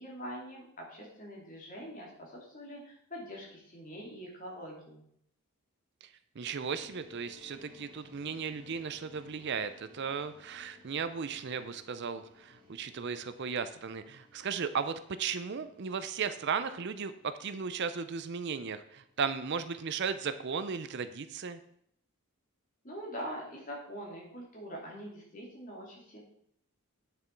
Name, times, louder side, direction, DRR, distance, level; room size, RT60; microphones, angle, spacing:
voice 1, 0.0-5.0 22.8-26.2, equal, 35° left, -2 dB, 2.8 m, -44 dB
voice 2, 6.4-21.6, right 6 dB, 50° right, 12 dB, 0.5 m, -36 dB
sound 1, 6.7-21.7, left 2 dB, 20° right, 2.2 m, -61 dB
9.0 x 6.8 x 4.6 m, 0.68 s
head